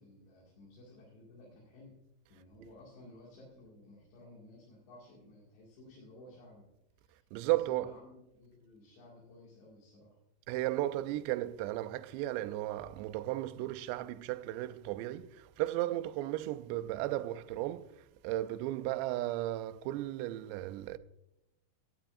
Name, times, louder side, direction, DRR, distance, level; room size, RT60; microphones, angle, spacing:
voice 1, 0.0-2.0 2.3-6.7 7.0-7.3 7.6-10.2, left 1 dB, 75° left, 4.4 m, -55 dB
voice 2, 7.3-7.9 10.5-21.0, right 15 dB, 85° right, 2.7 m, -35 dB
16.5 x 10.0 x 2.5 m
omnidirectional pair, 5.0 m